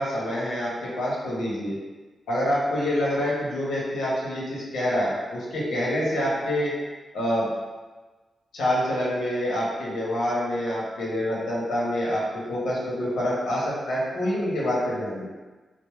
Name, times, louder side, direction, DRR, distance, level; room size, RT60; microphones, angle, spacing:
voice 1, 0.0-1.8 2.3-6.7 7.1-7.5 8.5-15.2, equal, 85° left, -6 dB, 1.0 m, -26 dB
4.1 x 2.0 x 3.0 m, 1.3 s
supercardioid pair, 45°, 0 cm